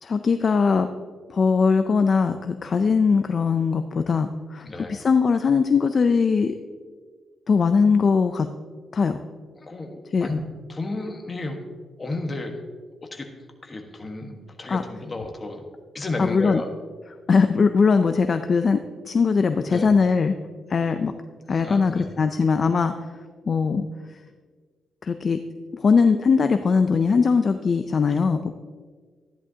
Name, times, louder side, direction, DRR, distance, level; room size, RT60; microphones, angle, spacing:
voice 1, 0.0-0.9 1.3-6.5 7.5-8.5 8.9-9.2 10.1-10.3 14.7-14.8 16.2-16.6 17.3-20.4 20.7-21.1 21.5-22.9 23.5-23.8 25.0-25.4 25.7-28.5, left 5 dB, 40° left, 8 dB, 0.4 m, -20 dB
voice 2, 4.6-5.0 9.6-10.4 10.7-11.6 12.0-12.5 13.1-13.3 13.6-15.6 15.9-16.7 19.7-19.9 21.5-22.3 28.3-28.5, left 2 dB, 25° left, 3 dB, 1.3 m, -32 dB
13.5 x 10.5 x 2.8 m, 1.5 s
cardioid pair, 125°, 0 cm